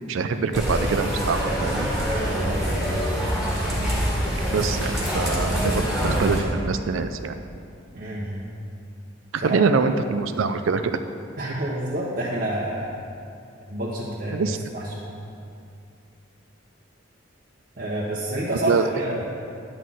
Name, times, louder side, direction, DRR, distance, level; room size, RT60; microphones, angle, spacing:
voice 1, 0.1-1.9 4.5-7.3 9.3-11.0 14.3-14.6 18.7-18.9, right 5 dB, 80° right, 9 dB, 0.4 m, -24 dB
sound 1, 0.5-6.4, equal, ahead, 1.8 m, -25 dB
voice 2, 2.4-3.3 7.9-8.5 9.4-9.7 11.4-13.0 13.7-15.1 17.8-19.2, right 1 dB, 50° right, -6 dB, 1.1 m, -29 dB
11.0 x 4.1 x 7.5 m, 2.5 s
head